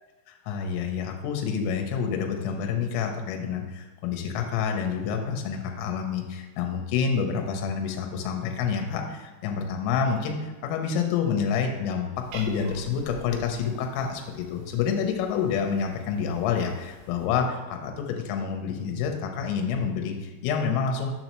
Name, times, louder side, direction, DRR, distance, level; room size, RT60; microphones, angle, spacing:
voice 1, 0.3-21.1, left 6 dB, 80° left, 3 dB, 3.3 m, -28 dB
Cat, 12.2-17.3, right 2 dB, 80° right, 2.8 m, -47 dB
7.2 x 5.4 x 3.0 m, 1.2 s
omnidirectional pair, 5.8 m